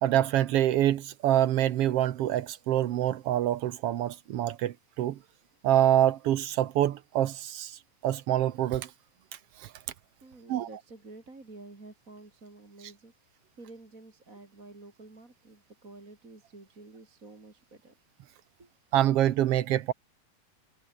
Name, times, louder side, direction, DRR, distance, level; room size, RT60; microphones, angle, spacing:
voice 1, 0.0-5.2 5.6-8.9 9.6-9.7 10.5-10.7 18.9-19.9, right 12 dB, 80° right, 1.3 m, -26 dB
voice 2, 10.2-17.9 18.6-18.7, right 2 dB, 25° right, 3.8 m, -50 dB
omnidirectional pair, 4.0 m